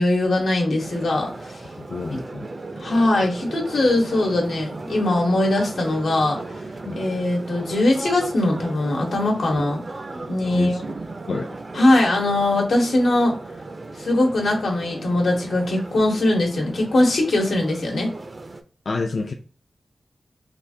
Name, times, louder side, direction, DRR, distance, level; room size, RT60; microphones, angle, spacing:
voice 1, 0.0-1.6 2.7-6.4 6.9-9.8 10.3-10.8 11.7-13.4 14.0-18.1, left 1 dB, 90° left, 1.1 m, -21 dB
sound 1, 0.8-18.6, right 2 dB, 35° right, 0.4 m, -36 dB
voice 2, 1.8-2.5 6.9-7.0 10.5-10.8 11.3-11.5 18.9-19.3, left 3 dB, 55° left, 0.3 m, -28 dB
3.4 x 2.4 x 2.6 m
wide cardioid pair, 140°, 0 cm